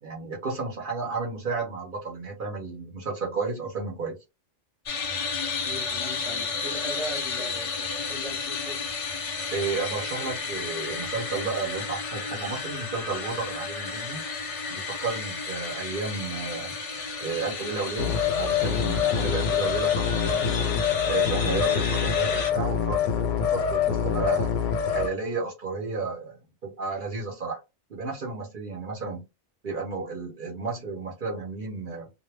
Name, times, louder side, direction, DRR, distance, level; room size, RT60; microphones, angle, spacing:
voice 1, 0.0-4.2 9.5-14.2 14.7-16.8 17.2-24.5 24.9-27.6 27.9-29.3 29.6-32.1, right 4 dB, 50° right, 0.8 m, -32 dB
sound 1, 4.9-22.5, left 4 dB, 50° left, 0.4 m, -32 dB
voice 2, 5.6-8.8, equal, 30° left, 0.7 m, -39 dB
sound 2, 18.0-25.1, left 8 dB, 90° left, 0.9 m, -25 dB
2.1 x 2.1 x 3.2 m
omnidirectional pair, 1.2 m